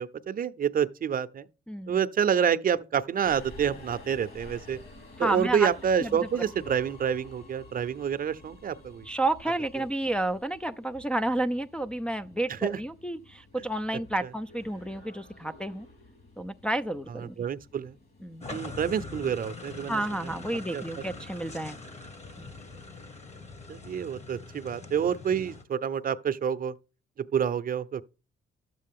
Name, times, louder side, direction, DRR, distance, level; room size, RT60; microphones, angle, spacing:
voice 1, 0.0-1.5 1.9-4.8 5.2-9.1 12.5-12.8 17.4-18.0 18.5-20.0 20.7-20.8 23.7-26.7 27.2-28.0, right 8 dB, 45° right, 0.7 m, -28 dB
voice 2, 1.7-2.0 5.2-5.7 6.0-6.1 9.0-15.9 16.4-17.4 18.2-18.5 19.9-21.8 22.4-22.5, right 1 dB, 5° left, 0.4 m, -31 dB
Subway metro underground, 3.2-23.1, left 2 dB, 50° left, 4.3 m, -52 dB
sound 1, 18.4-25.6, left 3 dB, 35° left, 1.6 m, -43 dB
11.5 x 7.6 x 3.6 m
cardioid pair, 90°, 20 cm